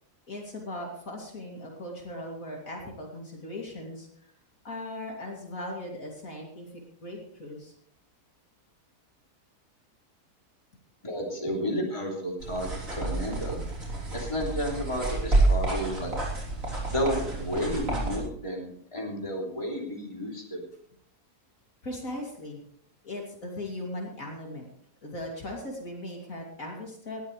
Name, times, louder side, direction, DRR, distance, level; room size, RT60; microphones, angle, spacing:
voice 1, 0.3-4.1 4.6-6.7 7.0-7.7 21.8-22.6 23.0-24.7 25.0-27.2, left 1 dB, 60° left, -1 dB, 3.2 m, -38 dB
voice 2, 11.0-13.6 14.1-16.1 16.9-20.6, equal, 20° left, -2 dB, 3.3 m, -32 dB
sound 1, 12.4-18.2, right 2 dB, 55° right, 4.0 m, -29 dB
19.5 x 13.0 x 3.3 m, 0.66 s
omnidirectional pair, 1.7 m